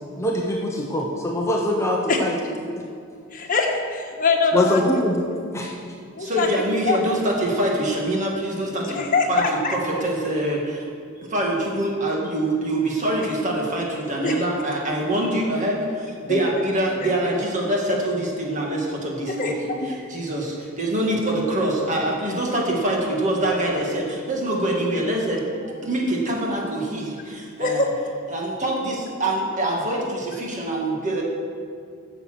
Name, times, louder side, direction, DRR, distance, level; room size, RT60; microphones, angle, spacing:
voice 1, 0.2-2.3 4.5-5.2 5.5-5.7, left 1 dB, 15° left, -1 dB, 0.9 m, -23 dB
voice 2, 3.3-5.0 6.1-6.5 6.8-7.0 8.8-9.7 14.2-14.4 16.3-16.6 19.3-19.9 27.6-27.9, left 3 dB, 40° left, 1 dB, 1.5 m, -23 dB
voice 3, 6.2-9.4 9.7-10.9 11.2-19.6 20.1-27.9 28.3-31.2, right 1 dB, 35° right, -2 dB, 2.1 m, -25 dB
11.0 x 7.1 x 7.7 m, 2.3 s
head